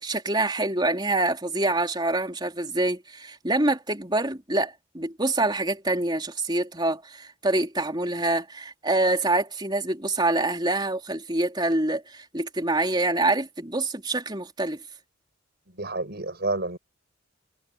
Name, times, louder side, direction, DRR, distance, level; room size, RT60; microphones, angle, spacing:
voice 1, 0.0-14.8, right 2 dB, 20° right, 3.8 m, -26 dB
voice 2, 15.8-16.8, right 2 dB, 50° right, 6.2 m, -29 dB
head